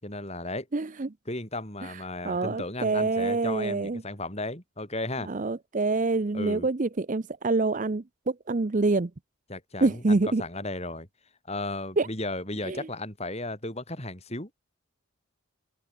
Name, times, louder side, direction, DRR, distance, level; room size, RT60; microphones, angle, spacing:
voice 1, 0.0-0.7 1.3-5.3 6.3-6.7 9.5-11.1 11.5-14.5, left 2 dB, 30° left, 6.7 m, -35 dB
voice 2, 0.7-1.1 1.8-1.9 2.2-4.0 5.3-9.1 9.8-10.4 12.0-12.1 12.7-12.9, right 3 dB, 35° right, 0.6 m, -26 dB
open air
head